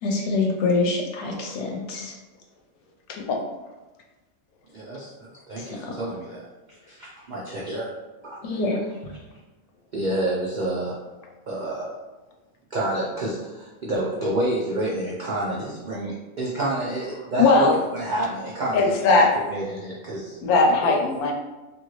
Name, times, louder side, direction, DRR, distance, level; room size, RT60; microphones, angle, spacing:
voice 1, 0.0-2.1 5.6-6.0 8.4-8.8, left 3 dB, 65° left, 1 dB, 0.8 m, -26 dB
voice 2, 3.1-3.4 17.4-17.8 18.7-19.3 20.4-21.3, left 3 dB, 90° left, 2 dB, 1.1 m, -19 dB
voice 3, 4.7-7.9 8.2-8.4 9.9-11.0 11.5-11.9 12.7-18.8 19.1-20.4 20.8-20.9, right 1 dB, 80° right, -5 dB, 0.4 m, -29 dB
2.9 x 2.5 x 3.0 m, 1.1 s
omnidirectional pair, 1.5 m